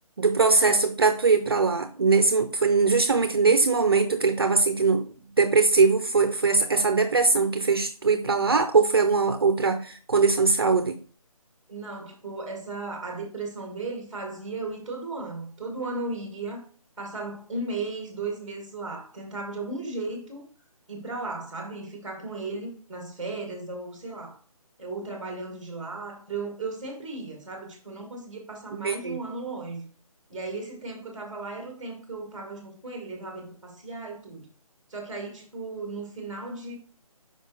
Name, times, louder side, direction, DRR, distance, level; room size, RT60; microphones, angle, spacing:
voice 1, 0.2-5.1 5.4-11.0 28.7-29.2, right 4 dB, 40° right, 0.5 m, -21 dB
voice 2, 11.7-16.6 17.0-20.4 20.9-24.4 24.8-29.9 30.3-34.5 34.9-36.8, right 3 dB, ahead, 1.1 m, -35 dB
5.3 x 5.1 x 3.7 m
hypercardioid pair, 170°, 19 cm